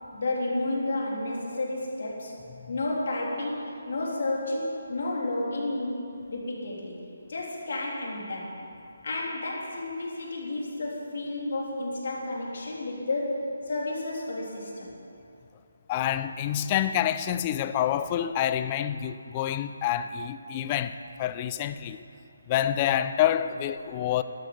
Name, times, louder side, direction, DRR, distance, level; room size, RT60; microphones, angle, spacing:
voice 1, 0.1-2.4 2.7-6.0 6.3-7.0 7.3-8.5 9.0-14.9, left 2 dB, 60° left, 3.3 m, -31 dB
voice 2, 15.9-22.0 22.5-24.2, left 11 dB, 25° left, 0.5 m, -27 dB
12.0 x 12.0 x 5.3 m
figure-of-eight pair, 155°, 0 cm